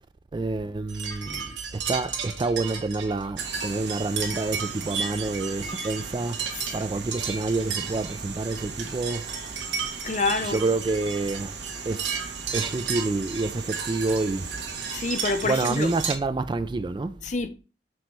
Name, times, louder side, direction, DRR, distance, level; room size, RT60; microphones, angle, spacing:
voice 1, 0.3-6.4 6.7-9.3 10.4-11.5 11.8-12.2 12.5-14.5 15.4-17.2, right 3 dB, 25° right, 0.3 m, -28 dB
sound 1, 0.9-16.1, right 6 dB, 90° right, 1.4 m, -34 dB
sound 2, 3.4-16.2, right 5 dB, 70° right, 1.1 m, -39 dB
voice 2, 10.0-10.7 14.9-15.9 17.2-17.5, left 3 dB, 40° left, 0.6 m, -27 dB
6.1 x 4.0 x 4.6 m
head